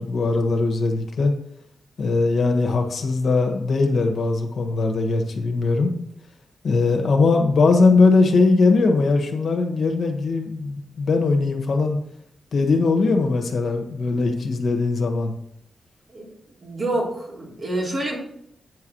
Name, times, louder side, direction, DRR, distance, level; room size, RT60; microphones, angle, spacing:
voice 1, 0.0-1.3 2.0-5.9 6.6-12.0 12.5-15.3, left 3 dB, 65° left, 4 dB, 1.5 m, -20 dB
voice 2, 16.6-18.2, right 1 dB, 45° right, -4 dB, 3.7 m, -27 dB
9.3 x 4.8 x 6.2 m, 0.73 s
cardioid pair, 95°, 0 cm